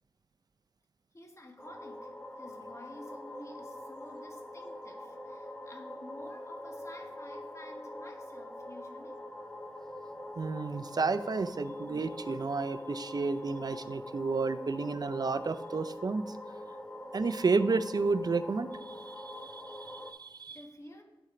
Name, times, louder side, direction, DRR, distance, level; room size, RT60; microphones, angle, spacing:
voice 1, 1.1-2.1 2.4-9.2 20.5-21.0, left 1 dB, 30° left, 2 dB, 1.5 m, -51 dB
sound 1, 1.6-20.1, left 1 dB, 10° left, 0.8 m, -44 dB
voice 2, 10.4-16.4 17.1-20.6, right 4 dB, 45° right, 13 dB, 0.5 m, -31 dB
10.5 x 4.4 x 3.8 m, 1.1 s
cardioid pair, 55°, 10 cm